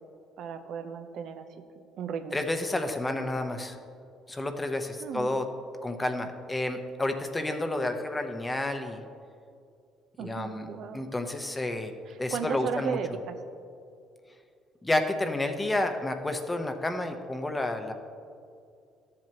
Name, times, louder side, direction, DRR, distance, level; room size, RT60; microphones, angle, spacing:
voice 1, 0.4-1.5 2.0-2.4 5.0-5.3 10.2-11.0 12.1-13.3, right 7 dB, 70° right, 8 dB, 0.6 m, -35 dB
voice 2, 2.3-3.8 4.3-5.4 5.8-9.0 10.2-11.9 12.2-13.0 14.8-17.9, left 2 dB, 15° left, 6 dB, 0.8 m, -30 dB
13.0 x 7.6 x 2.9 m, 2.4 s
supercardioid pair, 80°, 0 cm